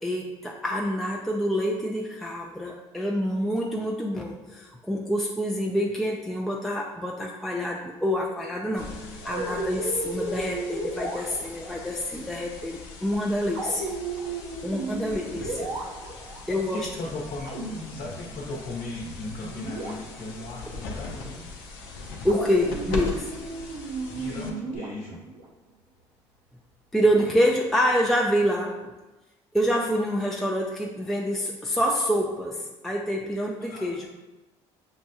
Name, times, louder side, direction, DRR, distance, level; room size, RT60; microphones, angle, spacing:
voice 1, 0.0-8.9 9.2-13.9 14.6-15.7 16.5-16.8 20.6-20.7 22.2-23.3 26.9-28.9 29.5-34.1, equal, ahead, -1 dB, 0.4 m, -27 dB
sound 1, 8.8-24.8, left 3 dB, 75° left, 0.7 m, -40 dB
voice 2, 8.9-9.8 14.5-15.3 16.5-17.5 17.9-21.5 24.1-25.2 33.6-33.9, left 2 dB, 60° left, -3 dB, 0.9 m, -38 dB
sound 2, 9.2-11.8 13.5-16.4 17.4-18.7 19.0-20.5 22.3-25.4 27.2-27.9, right 2 dB, 80° right, 0.9 m, -35 dB
5.8 x 2.2 x 2.8 m, 1.1 s
hypercardioid pair, 65°, 15 cm